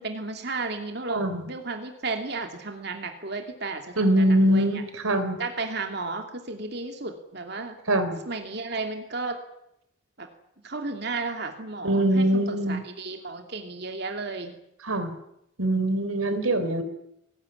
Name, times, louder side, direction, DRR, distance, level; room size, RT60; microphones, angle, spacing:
voice 1, 0.0-4.8 5.4-7.8 8.3-9.4 10.2-10.3 10.6-14.5, right 3 dB, 50° right, 4 dB, 2.6 m, -33 dB
voice 2, 1.1-1.4 4.0-5.4 7.9-8.2 11.8-12.8 14.8-15.1 15.6-16.8, right 1 dB, 90° right, 9 dB, 4.0 m, -23 dB
22.5 x 19.5 x 10.0 m, 0.81 s
head